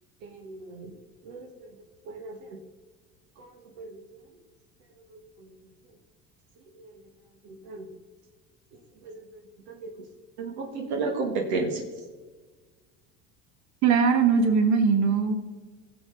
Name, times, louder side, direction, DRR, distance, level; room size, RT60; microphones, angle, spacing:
voice 1, 0.2-0.9 1.2-1.5 2.1-2.6 3.4-3.5 3.8-4.0 5.1-5.5 6.8-6.9 7.4-7.9 9.7-9.9 10.4-11.9, right 3 dB, 80° right, 2 dB, 1.5 m, -33 dB
voice 2, 13.8-15.4, right 5 dB, 60° right, 6 dB, 1.6 m, -21 dB
17.0 x 7.3 x 3.8 m, 1.4 s
supercardioid pair, 95°, 31 cm